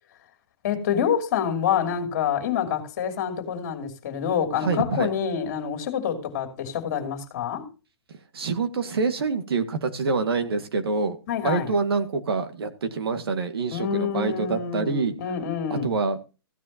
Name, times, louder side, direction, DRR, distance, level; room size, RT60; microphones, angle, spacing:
voice 1, 0.6-7.7 11.3-11.7 13.7-16.0, left 8 dB, 35° left, 2.8 m, -27 dB
voice 2, 4.6-5.1 8.3-11.2 11.4-15.1 15.7-16.2, right 4 dB, 65° right, 1.9 m, -26 dB
15.5 x 9.5 x 2.8 m
hypercardioid pair, 165°, 14 cm